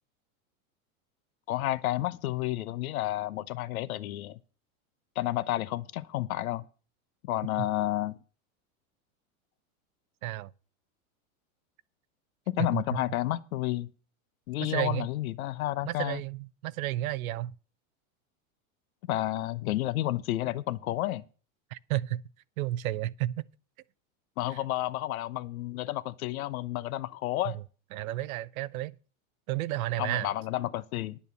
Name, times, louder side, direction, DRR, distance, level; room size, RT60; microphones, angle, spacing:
voice 1, 1.5-4.4 5.2-6.6 7.2-8.2 12.5-13.9 14.5-16.2 19.1-21.2 24.4-27.6 30.0-31.2, left 15 dB, 90° left, 0.8 m, -31 dB
voice 2, 12.6-13.0 14.6-15.1 15.8-17.5 21.7-22.2 22.6-23.5 27.9-29.0 29.5-30.3, right 15 dB, 85° right, 0.7 m, -32 dB
10.5 x 7.1 x 6.8 m
supercardioid pair, 115°, 41 cm